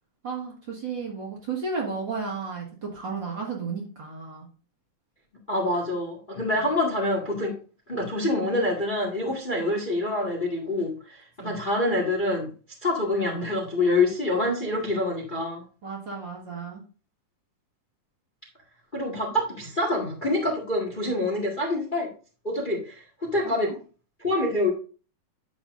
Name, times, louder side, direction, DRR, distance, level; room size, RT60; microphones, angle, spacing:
voice 1, 0.2-4.5 11.4-11.6 15.8-16.8 23.4-23.8, right 4 dB, 40° right, -2 dB, 2.2 m, -33 dB
voice 2, 5.5-7.5 7.9-12.5 12.8-15.6 18.9-22.1 22.4-23.7 24.2-24.7, left 2 dB, 20° left, 0 dB, 1.5 m, -26 dB
9.9 x 7.0 x 2.5 m, 0.36 s
omnidirectional pair, 3.5 m